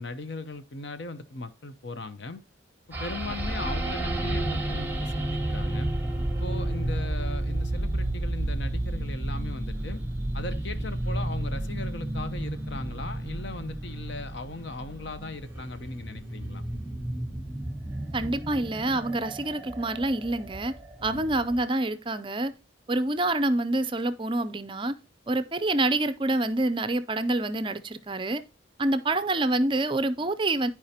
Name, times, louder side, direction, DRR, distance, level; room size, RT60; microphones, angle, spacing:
voice 1, 0.0-2.4 3.0-5.9 6.4-10.0 10.3-16.6 21.0-21.3, left 3 dB, 65° left, 0.9 m, -38 dB
sound 1, 2.9-21.6, right 1 dB, 10° right, 1.2 m, -32 dB
voice 2, 18.1-20.7 21.0-22.5 22.9-25.0 25.3-28.4 28.8-30.7, right 2 dB, 25° right, 0.5 m, -27 dB
13.0 x 4.8 x 2.8 m
head